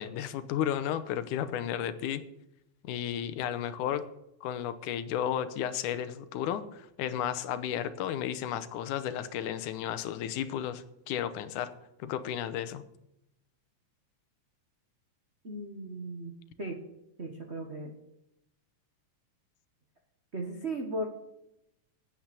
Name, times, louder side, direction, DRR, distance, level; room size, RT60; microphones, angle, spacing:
voice 1, 0.0-2.2 2.8-4.1 4.4-11.7 12.0-12.8, left 10 dB, 90° left, 13 dB, 2.3 m, -33 dB
voice 2, 15.4-16.3 16.6-16.8 17.2-17.9 20.3-21.1, right 1 dB, 70° right, 3 dB, 0.6 m, -36 dB
8.9 x 8.9 x 8.2 m, 0.84 s
omnidirectional pair, 3.5 m